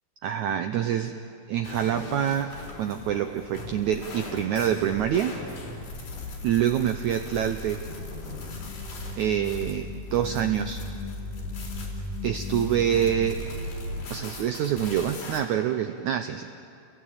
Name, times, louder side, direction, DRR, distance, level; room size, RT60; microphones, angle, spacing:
voice 1, 0.2-1.2 1.5-5.3 6.4-7.8 9.2-10.8 12.2-13.4 14.1-16.5, right 10 dB, 80° right, 7 dB, 1.7 m, -26 dB
sound 1, 1.6-15.4, left 2 dB, 65° left, 5.7 m, -39 dB
sound 2, 7.3-13.3, left 3 dB, 35° left, 2.3 m, -37 dB
28.5 x 21.5 x 8.8 m, 2.5 s
omnidirectional pair, 4.4 m